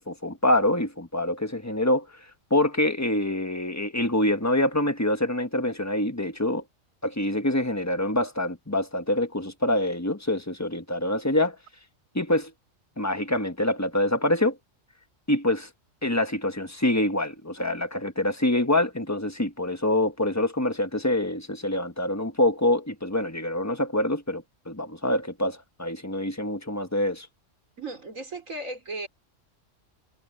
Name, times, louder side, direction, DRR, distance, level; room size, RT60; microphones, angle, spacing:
voice 1, 0.0-2.1 2.5-6.6 7.0-11.6 12.1-12.5 13.0-14.6 15.3-15.7 16.0-27.3, left 1 dB, 15° left, 1.3 m, -25 dB
voice 2, 27.8-29.1, right 2 dB, 80° right, 4.7 m, -35 dB
omnidirectional pair, 1.3 m